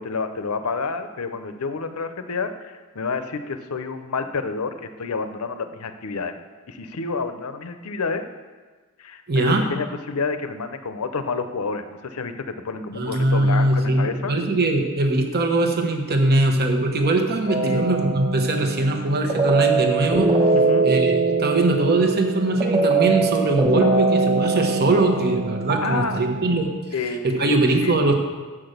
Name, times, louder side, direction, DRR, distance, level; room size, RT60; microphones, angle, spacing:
voice 1, 0.0-2.5 2.9-6.3 6.7-8.2 9.0-14.4 17.6-17.9 20.5-20.9 25.8-26.2 26.9-28.0, left 4 dB, 75° left, 9 dB, 0.7 m, -29 dB
voice 2, 9.3-9.6 12.9-20.3 20.8-26.7 27.2-28.1, right 2 dB, 45° right, 4 dB, 1.1 m, -21 dB
sound 1, 17.5-26.6, right 3 dB, 30° right, 1.3 m, -22 dB
7.5 x 6.0 x 6.6 m, 1.4 s
head